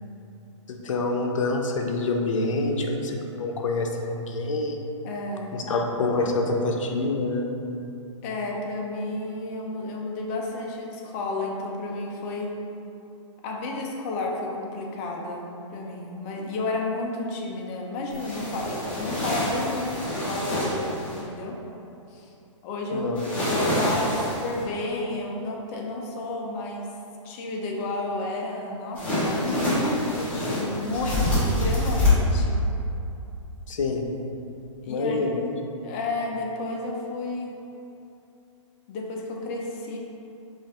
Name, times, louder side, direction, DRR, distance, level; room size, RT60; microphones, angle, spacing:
voice 1, 0.7-4.8 5.5-7.5 22.9-23.2 33.7-34.1 34.9-35.4, left 2 dB, 75° left, 2 dB, 0.6 m, -26 dB
voice 2, 5.0-5.6 8.2-12.5 13.4-21.6 22.1-22.3 22.6-23.1 23.4-26.9 27.2-32.6 34.8-35.3 35.8-37.6 38.9-40.0, left 2 dB, 30° left, -1 dB, 0.5 m, -31 dB
sound 1, 18.1-21.2 23.1-24.6 28.9-32.1, equal, 10° left, 1.2 m, -27 dB
5.2 x 2.5 x 3.5 m, 2.8 s
hypercardioid pair, 145°, 16 cm